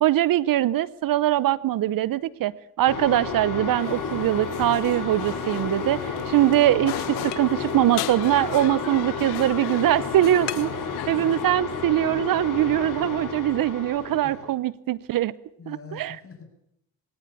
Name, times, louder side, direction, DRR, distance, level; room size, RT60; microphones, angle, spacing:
voice 1, 0.0-10.7 11.1-15.3 15.7-16.2, right 13 dB, 60° right, 20 dB, 0.8 m, -22 dB
sound 1, 2.9-14.5, left 5 dB, 55° left, 5.4 m, -32 dB
sound 2, 3.8-11.5, left 15 dB, 85° left, 1.3 m, -37 dB
voice 2, 15.6-16.5, left 5 dB, 35° left, 4 dB, 7.4 m, -44 dB
22.0 x 17.5 x 8.5 m, 0.78 s
supercardioid pair, 60°, 38 cm